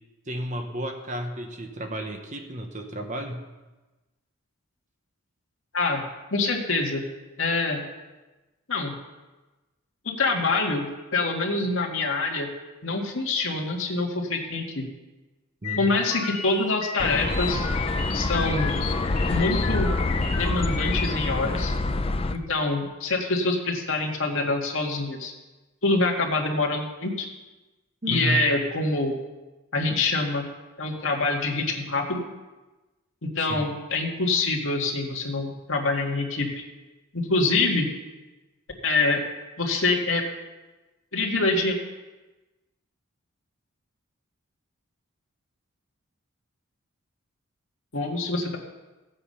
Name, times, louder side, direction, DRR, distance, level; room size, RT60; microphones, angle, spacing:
voice 1, 0.3-3.4 15.6-16.0 28.0-28.5 33.4-33.7, equal, 35° right, 4 dB, 1.0 m, -32 dB
voice 2, 6.3-7.0 7.4-7.8 8.7-8.9 10.0-10.8 11.1-12.5 12.8-14.8 15.8-17.7 18.1-18.8 19.3-19.9 20.4-21.7 22.3-25.3 25.8-27.3 28.1-29.2 29.7-30.4 30.8-32.2 33.2-36.6 37.1-37.9 38.8-39.2 39.6-40.2 41.1-41.8 47.9-48.6, left 3 dB, 65° left, 0 dB, 2.0 m, -25 dB
sound 1, 15.6-21.1, left 6 dB, 85° left, 1.5 m, -34 dB
sound 2, 17.0-22.4, left 2 dB, 25° left, 0.5 m, -26 dB
15.5 x 8.7 x 5.6 m, 1.2 s
head